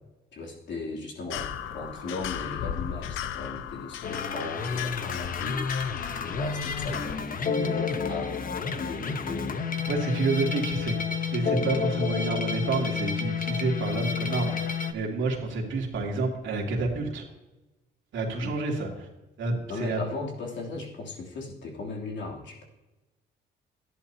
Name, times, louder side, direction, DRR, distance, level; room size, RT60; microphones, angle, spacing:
voice 1, 0.3-6.0 6.2-9.5 18.4-18.5 19.7-22.7, left 3 dB, 65° left, -1 dB, 3.1 m, -37 dB
sound 1, 1.3-7.2, left 10 dB, 90° left, 0.6 m, -36 dB
sound 2, 4.0-14.9, left 6 dB, 45° left, 1.0 m, -30 dB
voice 2, 9.9-11.0 11.3-17.2 18.1-19.1 19.4-20.0, right 3 dB, 75° right, 0 dB, 2.7 m, -29 dB
14.0 x 10.5 x 2.9 m, 1.1 s
cardioid pair, 90°, 20 cm